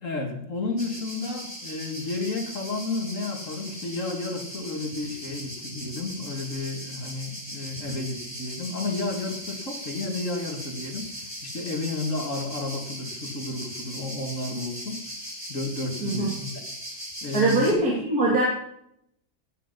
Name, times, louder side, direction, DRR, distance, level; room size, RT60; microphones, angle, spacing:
voice 1, 0.0-15.0 15.5-16.6 17.2-17.9, left 3 dB, 55° left, 3 dB, 2.8 m, -32 dB
sound 1, 0.8-17.7, equal, 15° right, 7.4 m, -39 dB
voice 2, 17.3-18.5, right 2 dB, 70° right, -2 dB, 3.1 m, -22 dB
17.0 x 9.5 x 5.5 m, 0.73 s
omnidirectional pair, 1.6 m